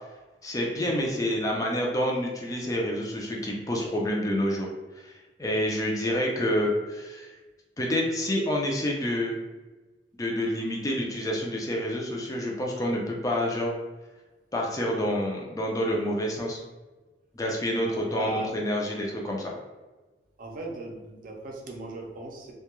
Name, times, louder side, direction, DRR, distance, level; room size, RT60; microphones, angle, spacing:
voice 1, 0.4-4.7 5.1-7.3 7.8-9.4 10.2-13.7 14.5-16.6 17.3-19.5, equal, 20° left, -1 dB, 0.4 m, -28 dB
voice 2, 17.9-18.5 18.8-19.0 20.4-22.5, right 2 dB, 50° right, 0 dB, 0.5 m, -37 dB
2.2 x 2.2 x 2.9 m, 1.2 s
head